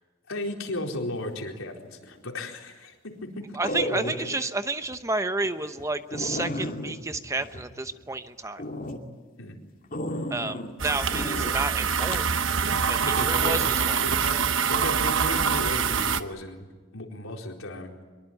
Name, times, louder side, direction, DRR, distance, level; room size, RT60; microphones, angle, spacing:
voice 1, 0.3-3.6 3.9-4.1 9.4-9.6 13.0-17.9, left 1 dB, 90° left, 1 dB, 4.4 m, -35 dB
sound 1, 2.0-2.4 3.6-4.4 4.8-5.0 5.4-5.5 5.8-5.9 6.1-8.2 8.6-9.0 9.9-10.7 11.1-11.5 12.1-12.3, left 1 dB, 40° left, 2.7 m, -33 dB
voice 2, 3.5-8.6 10.3-12.3 12.9-14.0, right 2 dB, 15° right, 10 dB, 0.9 m, -31 dB
sound 2, 10.8-16.2, right 6 dB, 70° right, 1.1 m, -25 dB
24.0 x 22.5 x 9.0 m, 1.3 s
head